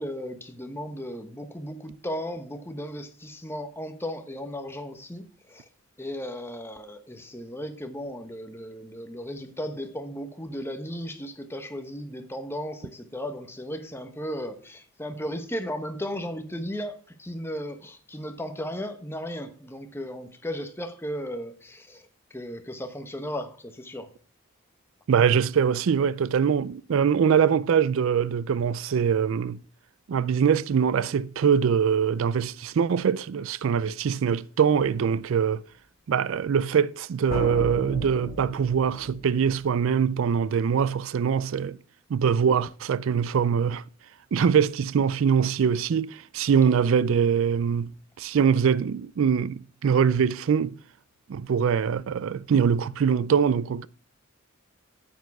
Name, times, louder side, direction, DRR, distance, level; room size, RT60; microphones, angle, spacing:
voice 1, 0.0-5.6 6.0-22.1 22.3-24.1, equal, 10° left, 1.1 m, -35 dB
voice 2, 25.1-29.6 30.1-35.6 36.1-41.8 42.1-43.8 44.3-47.9 48.2-50.8 51.3-53.9, right 7 dB, 65° right, 0.4 m, -23 dB
sound 1, 37.3-39.9, equal, 40° left, 3.1 m, -36 dB
9.2 x 8.6 x 4.7 m
head